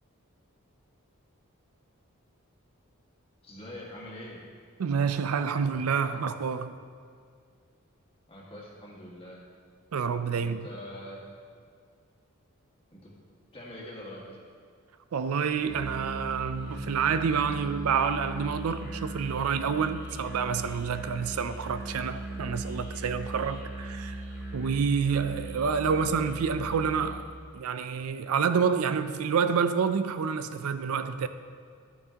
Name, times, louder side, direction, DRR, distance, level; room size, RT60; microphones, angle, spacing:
voice 1, 3.4-4.4 8.3-9.4 10.3-11.2 12.9-13.1 13.5-14.3, left 1 dB, 25° left, 1.7 m, -44 dB
voice 2, 4.8-6.8 9.9-10.7 15.1-24.2 24.5-27.3 27.5-31.3, right 6 dB, 90° right, 0.4 m, -28 dB
Musical instrument, 15.5-27.3, right 1 dB, 5° right, 1.9 m, -39 dB
11.0 x 8.5 x 2.9 m
head